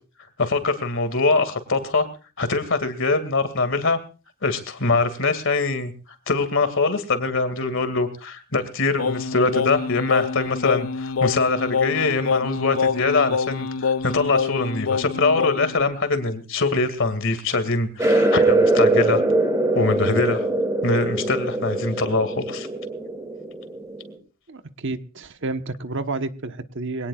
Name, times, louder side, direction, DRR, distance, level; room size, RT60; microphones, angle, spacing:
voice 1, 0.4-2.1 2.4-4.0 4.4-5.9 6.3-19.2 19.7-20.5 20.8-22.7, left 3 dB, 65° left, 10 dB, 2.3 m, -23 dB
Singing, 9.0-15.8, left 5 dB, 85° left, 0.7 m, -26 dB
sound 1, 18.0-24.1, right 2 dB, 15° right, 2.8 m, -22 dB
voice 2, 24.5-27.1, right 3 dB, 60° right, 8 dB, 1.2 m, -30 dB
23.0 x 18.0 x 2.4 m, 0.34 s
head